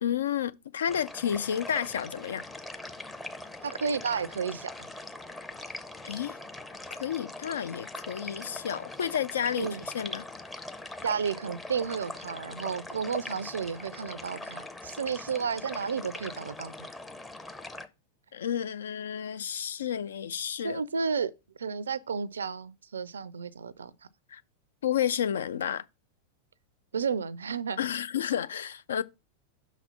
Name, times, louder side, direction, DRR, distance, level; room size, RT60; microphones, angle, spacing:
voice 1, 0.0-2.4 6.0-6.4 6.9-10.2 18.3-20.8 24.3-24.4 24.8-25.8 27.8-29.0, left 9 dB, 65° left, 0.3 m, -31 dB
sound 1, 0.9-17.9, left 2 dB, 10° left, 0.6 m, -42 dB
voice 2, 3.6-4.9 9.6-9.8 11.0-16.7 20.6-21.3 21.6-23.9 26.9-27.8 29.0-29.1, right 6 dB, 70° right, 0.4 m, -32 dB
5.8 x 4.1 x 5.5 m
figure-of-eight pair, 90°, 0 cm